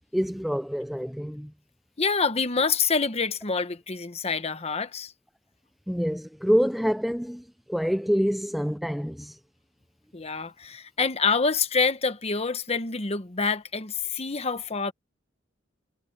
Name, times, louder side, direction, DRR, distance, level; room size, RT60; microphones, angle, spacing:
voice 1, 0.1-1.5 5.9-9.4, equal, ahead, 0.4 m, -26 dB
voice 2, 2.0-5.1 10.1-14.9, left 4 dB, 30° left, 1.1 m, -26 dB
head